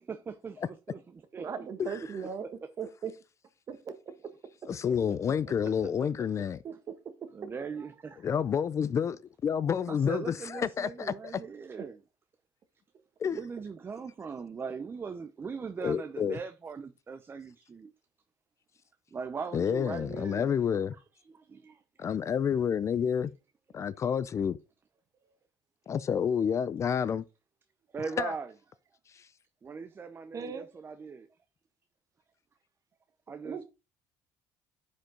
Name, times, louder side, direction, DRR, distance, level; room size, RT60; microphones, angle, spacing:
voice 1, 0.0-1.7 2.0-2.1 2.4-2.5 4.9-5.1 5.5-5.9 6.4-6.5 7.3-8.3 9.9-12.0 13.3-17.9 19.1-20.5 20.9-21.0 21.3-22.1 27.9-28.5 29.6-31.3 33.3-33.6, right 5 dB, 25° right, 0.7 m, -40 dB
voice 2, 1.4-2.5 2.8-3.1 3.7-3.9 6.6-6.7 11.8-11.9 30.3-30.7 33.4-33.6, right 6 dB, 45° right, 1.4 m, -37 dB
voice 3, 4.7-6.6 8.2-11.4 13.2-13.4 15.8-16.4 19.5-20.9 22.0-23.3 23.7-24.6 25.9-27.2 28.2-28.3 29.2-29.3, left 7 dB, 35° left, 0.4 m, -29 dB
10.0 x 5.2 x 3.8 m
cardioid pair, 105°, 8 cm